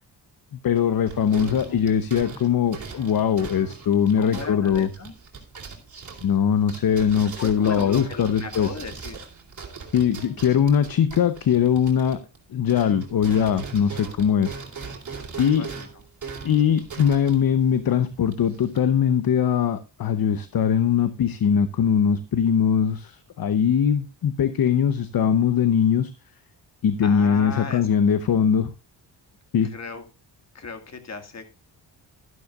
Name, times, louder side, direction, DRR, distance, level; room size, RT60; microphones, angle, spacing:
voice 1, 0.5-4.9 6.2-8.7 9.9-12.2 12.5-14.5 15.4-15.7 16.4-26.1 26.8-28.7 29.5-29.7, left 8 dB, 55° left, 12 dB, 0.9 m, -21 dB
sound 1, 0.8-12.4 12.7-18.8, right 5 dB, 45° right, 3.4 m, -40 dB
voice 2, 1.4-1.8 4.2-5.1 7.4-9.2 15.4-15.9 27.0-27.8 29.7-30.0 30.5-31.4, left 4 dB, 40° left, 7 dB, 2.1 m, -36 dB
12.5 x 12.0 x 2.4 m, 0.27 s
cardioid pair, 110°, 42 cm